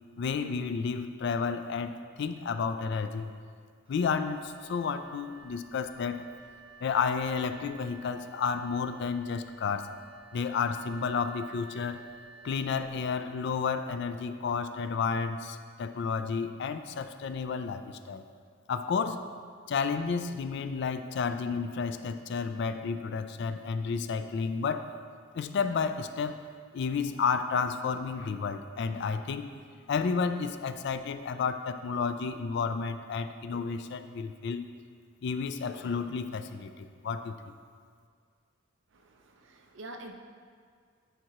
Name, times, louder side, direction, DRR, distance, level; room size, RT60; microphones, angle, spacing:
voice 1, 0.2-3.3 3.9-6.3 6.8-9.9 10.3-12.0 12.4-18.2 18.7-19.2 19.7-24.9 25.3-26.4 26.7-29.5 29.9-34.7 35.2-37.4, left 5 dB, 55° left, 9 dB, 0.3 m, -31 dB
Wind instrument woodwind instrument, 3.8-13.3, right 4 dB, 25° right, 0.6 m, -53 dB
voice 2, 38.9-40.1, right 2 dB, 65° right, 4 dB, 0.6 m, -46 dB
8.9 x 4.7 x 3.0 m, 2.1 s
head